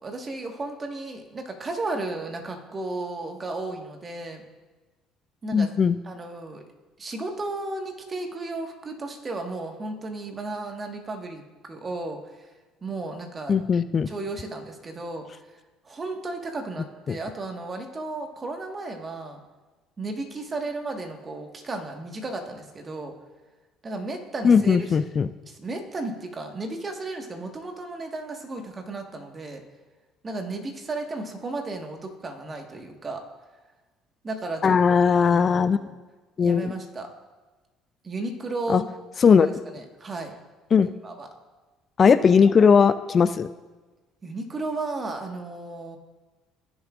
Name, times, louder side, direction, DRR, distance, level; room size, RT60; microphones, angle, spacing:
voice 1, 0.0-4.4 5.4-5.7 6.0-6.6 7.0-12.2 12.8-13.6 14.1-15.3 15.8-19.4 20.0-23.1 23.8-24.9 25.5-29.6 30.2-33.2 34.2-35.9 36.4-37.1 38.0-38.9 39.4-39.5 39.7-40.3 41.0-41.3 44.2-46.0, right 2 dB, 35° right, 4 dB, 1.5 m, -34 dB
voice 2, 5.5-6.0 13.5-14.1 17.1-17.2 24.4-25.3 34.6-35.8 36.4-36.7 38.7-38.8 39.2-39.5 40.7-40.9 42.0-43.5, left 6 dB, 40° left, 14 dB, 0.3 m, -18 dB
16.0 x 7.0 x 2.5 m, 1.2 s
hypercardioid pair, 65°, 0 cm